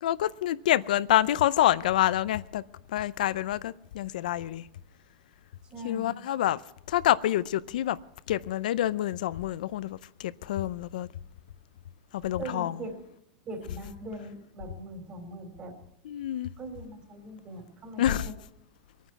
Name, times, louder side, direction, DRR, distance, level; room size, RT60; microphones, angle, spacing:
voice 1, 0.0-2.6 2.9-4.7 5.8-6.6 6.9-8.0 8.3-11.1 12.1-12.8 16.0-16.5 18.0-18.3, left 12 dB, 85° left, 0.5 m, -27 dB
voice 2, 5.6-6.1 12.4-13.0 13.5-15.8 16.6-18.1, right 1 dB, 25° right, 3.7 m, -41 dB
22.0 x 9.3 x 6.0 m
supercardioid pair, 150°, 4 cm